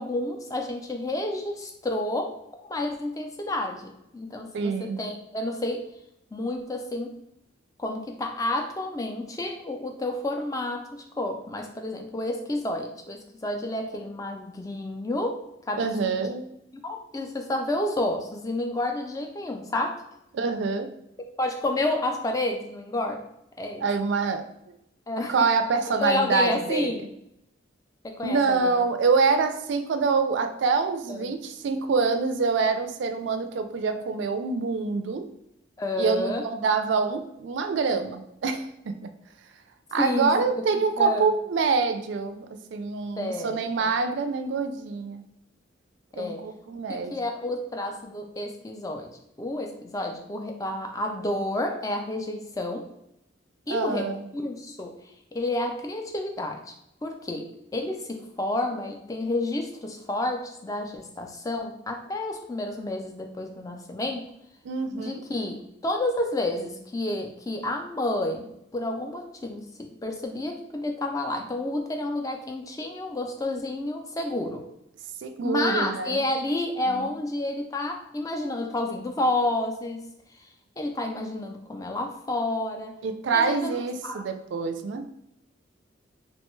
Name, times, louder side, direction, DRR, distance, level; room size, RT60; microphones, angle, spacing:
voice 1, 0.0-2.4 2.7-4.5 4.8-5.9 6.3-7.2 7.8-16.3 16.8-20.0 21.4-23.2 23.6-23.8 25.1-25.4 25.9-27.1 28.0-28.8 31.1-31.3 35.8-36.4 40.0-40.6 41.0-41.2 43.2-43.9 46.1-46.5 46.9-49.1 49.4-52.9 53.7-55.0 55.3-56.7 57.0-64.2 64.9-74.7 75.4-80.0 80.8-82.9 83.3-84.3, left 1 dB, 20° left, 3 dB, 0.3 m, -30 dB
voice 2, 4.5-5.0 15.8-16.5 20.3-20.9 23.8-24.5 25.3-26.9 28.2-35.3 36.0-38.7 39.9-45.2 46.2-47.2 53.7-54.2 64.7-65.2 75.2-76.2 76.9-77.1 83.0-85.0, right 4 dB, 65° right, 8 dB, 0.3 m, -26 dB
3.0 x 2.2 x 3.0 m, 0.79 s
head